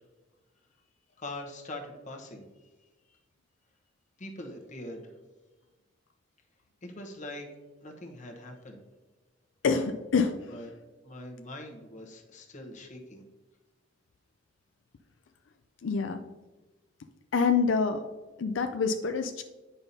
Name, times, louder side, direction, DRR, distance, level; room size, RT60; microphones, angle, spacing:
voice 1, 1.2-2.4 4.2-5.1 6.8-7.5 7.8-8.8 10.5-10.7 11.0-13.2, left 1 dB, 40° left, 2 dB, 1.0 m, -42 dB
voice 2, 9.6-10.4 15.8-16.2 17.3-18.0 18.4-19.4, left 5 dB, 85° left, 6 dB, 0.4 m, -26 dB
8.9 x 5.6 x 2.7 m, 1.2 s
head